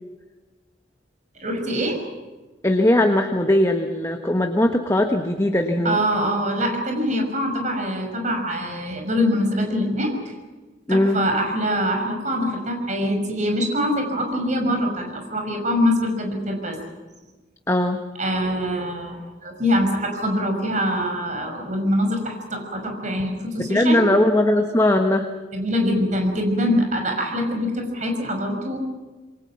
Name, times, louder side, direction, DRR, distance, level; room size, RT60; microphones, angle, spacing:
voice 1, 1.4-2.0 5.8-10.1 10.9-16.7 18.2-24.1 25.5-28.8, equal, 40° right, 3 dB, 6.0 m, -24 dB
voice 2, 2.6-6.0 10.9-11.2 17.7-18.0 23.7-25.3, left 1 dB, 15° left, 4 dB, 1.4 m, -19 dB
27.5 x 22.5 x 6.0 m, 1.2 s
head